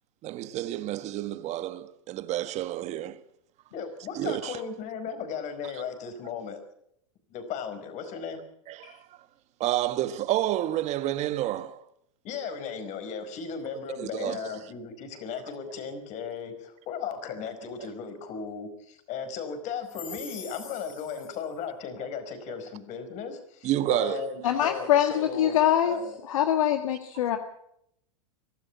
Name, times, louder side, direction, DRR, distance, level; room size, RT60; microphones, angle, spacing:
voice 1, 0.2-3.2 4.1-4.6 8.7-9.0 9.6-11.8 14.0-14.4 23.6-24.3, right 13 dB, 40° right, 1.5 m, -29 dB
voice 2, 3.7-6.6 7.3-8.4 12.2-26.2, left 6 dB, 45° left, 4.9 m, -36 dB
voice 3, 24.4-26.0 26.3-27.4, left 10 dB, 75° left, 1.7 m, -23 dB
23.0 x 13.0 x 8.5 m
hypercardioid pair, 105°, 17 cm